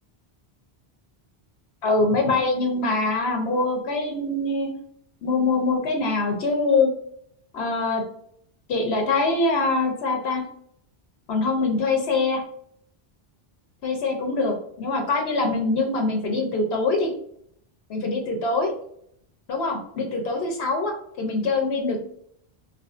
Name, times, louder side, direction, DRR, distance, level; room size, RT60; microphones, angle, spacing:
voice 1, 1.8-4.7 5.2-6.9 7.5-8.0 8.7-10.4 11.3-12.4 13.8-17.1 17.9-18.7 19.5-22.0, left 3 dB, 85° left, 3 dB, 1.0 m, -23 dB
3.7 x 2.6 x 2.4 m, 0.68 s
omnidirectional pair, 1.1 m